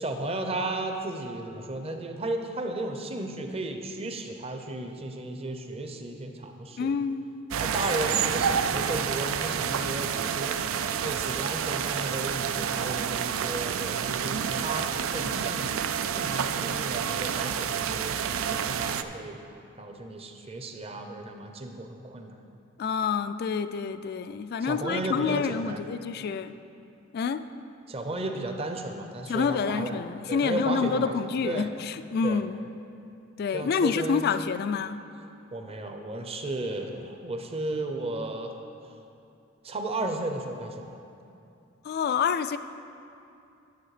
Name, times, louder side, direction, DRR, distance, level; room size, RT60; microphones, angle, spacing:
voice 1, 0.0-6.9 7.5-10.7 11.0-15.8 16.1-19.4 19.8-22.4 24.6-25.9 27.9-30.0 30.3-31.1 31.4-31.7 32.2-32.4 33.5-34.2 35.5-38.5 39.6-41.0, right 2 dB, 30° right, 5 dB, 0.7 m, -34 dB
voice 2, 6.8-7.3 22.8-26.6 27.1-27.4 29.3-32.6 33.4-35.0 41.8-42.6, left 6 dB, 50° left, 12 dB, 0.3 m, -28 dB
sound 1, 7.5-19.0, right 7 dB, 85° right, 0.4 m, -29 dB
10.5 x 7.2 x 4.9 m, 2.7 s
head